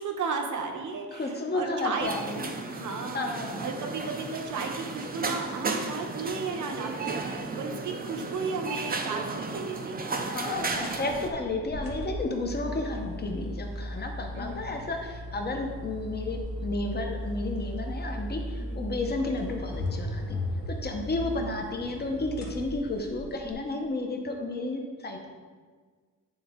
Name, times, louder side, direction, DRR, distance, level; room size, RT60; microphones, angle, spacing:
voice 1, 0.0-2.1 2.7-3.3 3.6-10.1 12.6-12.8 14.3-14.6 18.5-18.8 21.2-21.4, right 4 dB, 60° right, 3 dB, 1.0 m, -34 dB
voice 2, 1.1-2.5 3.1-3.7 10.3-20.4 20.7-25.3, left 2 dB, 30° left, 3 dB, 0.9 m, -32 dB
sound 1, 2.0-11.3, right 3 dB, 25° right, 0.6 m, -34 dB
sound 2, 10.7-23.5, left 1 dB, 85° left, 1.3 m, -36 dB
9.1 x 3.8 x 3.7 m, 1.5 s
cardioid pair, 125°, 33 cm